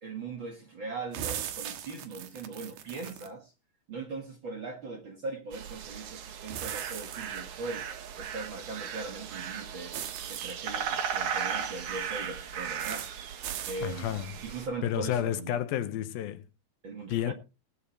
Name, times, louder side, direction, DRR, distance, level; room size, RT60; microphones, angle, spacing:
voice 1, 0.0-3.5 3.9-7.9 8.2-10.0 10.3-13.4 13.7-15.6 16.8-17.3, right 3 dB, 40° right, 1.9 m, -40 dB
sound 1, 1.1-3.3 6.5-7.4 9.9-10.5 12.8-13.1 13.4-13.8, right 10 dB, 85° right, 3.4 m, -38 dB
sound 2, 5.5-14.7, right 8 dB, 60° right, 2.6 m, -37 dB
voice 2, 13.8-14.3 14.8-16.4 17.1-17.3, left 11 dB, 80° left, 2.8 m, -31 dB
19.0 x 8.0 x 4.3 m
omnidirectional pair, 4.3 m